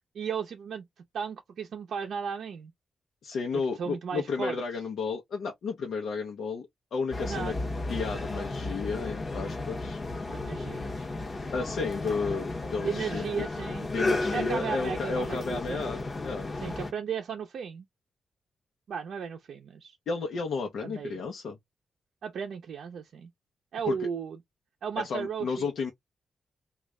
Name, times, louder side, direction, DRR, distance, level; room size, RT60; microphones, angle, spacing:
voice 1, 0.1-0.9 1.1-2.7 3.8-4.6 7.2-7.6 10.3-11.2 12.8-13.9 14.3-15.9 16.6-17.8 18.9-20.0 20.8-21.2 22.2-23.3 23.7-24.4 24.8-25.7, right 7 dB, 70° right, 0.5 m, -35 dB
voice 2, 3.2-7.5 7.9-10.0 11.5-13.4 13.9-16.5 20.1-21.6 23.9-24.0 25.0-25.9, left 4 dB, 85° left, 0.7 m, -33 dB
sound 1, 7.1-16.9, left 2 dB, 30° left, 0.8 m, -33 dB
3.1 x 2.4 x 3.5 m
wide cardioid pair, 170°, 0 cm